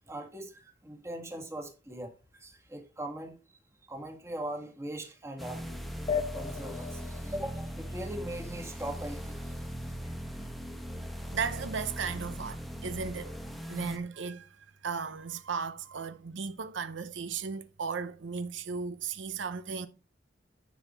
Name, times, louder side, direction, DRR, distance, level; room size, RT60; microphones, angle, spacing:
voice 1, 0.1-2.1 2.4-3.4 3.9-5.7 6.3-9.5 10.0-10.1, right 1 dB, 15° right, 1.8 m, -40 dB
sound 1, 5.4-14.0, equal, ahead, 1.1 m, -39 dB
sound 2, 6.1-9.0, left 6 dB, 30° left, 1.0 m, -37 dB
voice 2, 11.3-13.4 13.7-14.5 14.8-19.9, right 5 dB, 80° right, 0.7 m, -35 dB
10.5 x 6.2 x 4.3 m
head